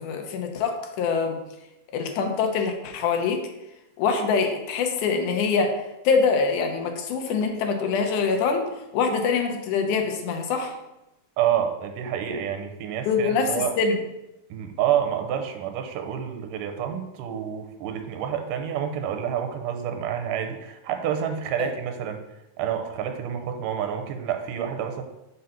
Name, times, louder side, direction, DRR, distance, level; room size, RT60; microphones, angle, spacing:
voice 1, 0.0-1.4 1.9-3.4 4.0-8.7 8.9-10.8 13.1-13.9 21.6-21.7, left 5 dB, 75° left, 4 dB, 2.2 m, -24 dB
voice 2, 11.4-13.8 14.5-22.2 22.6-25.0, right 9 dB, 90° right, 6 dB, 2.3 m, -28 dB
5.5 x 3.9 x 5.6 m, 0.93 s
omnidirectional pair, 3.7 m